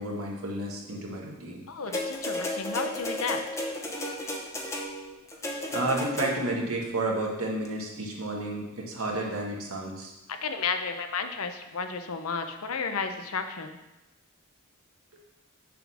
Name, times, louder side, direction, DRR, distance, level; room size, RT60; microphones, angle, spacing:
voice 1, 0.0-2.0 5.7-10.1, right 2 dB, 80° right, -1 dB, 1.4 m, -31 dB
voice 2, 1.7-3.4 10.3-13.8, left 5 dB, 80° left, 7 dB, 0.7 m, -32 dB
sound 1, 1.9-6.7 7.6-7.7, left 1 dB, 15° left, 0.7 m, -33 dB
6.8 x 3.7 x 6.2 m, 0.98 s
head